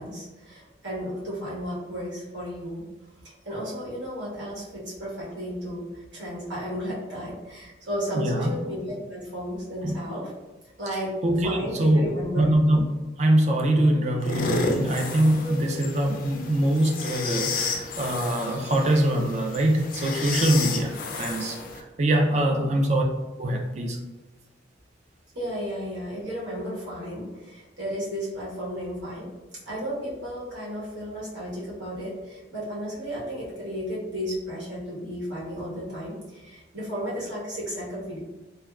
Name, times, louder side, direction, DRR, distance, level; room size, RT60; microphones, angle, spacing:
voice 1, 0.0-2.9 3.4-10.3 10.8-11.1 11.4-12.5 15.4-15.8 22.5-22.7 25.3-29.3 29.6-38.2, equal, 70° right, -7 dB, 1.2 m, -33 dB
voice 2, 8.1-8.5 9.8-9.9 11.2-12.1 12.4-12.8 13.2-23.0 23.4-24.0, right 1 dB, 35° right, 2 dB, 0.3 m, -23 dB
sound 1, 14.2-21.8, left 4 dB, 45° left, 0.3 m, -32 dB
3.4 x 2.1 x 2.3 m, 1.1 s
head